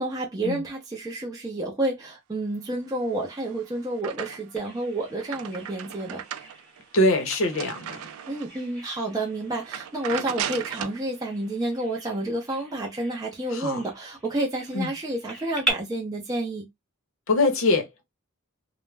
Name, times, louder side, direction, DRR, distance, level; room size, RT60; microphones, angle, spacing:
voice 1, 0.0-6.2 8.3-16.7, right 1 dB, 20° right, 0.5 m, -30 dB
sound 1, 3.1-4.7 5.0-8.7 9.1-9.3 9.6-11.0, right 9 dB, 85° right, 0.4 m, -36 dB
Bird vocalization bird call bird song, 4.6-15.7, right 2 dB, 5° left, 0.9 m, -40 dB
voice 2, 6.9-8.0 13.5-13.8 14.7-14.9 17.3-17.9, left 2 dB, 65° left, 0.7 m, -23 dB
2.3 x 2.1 x 3.2 m
head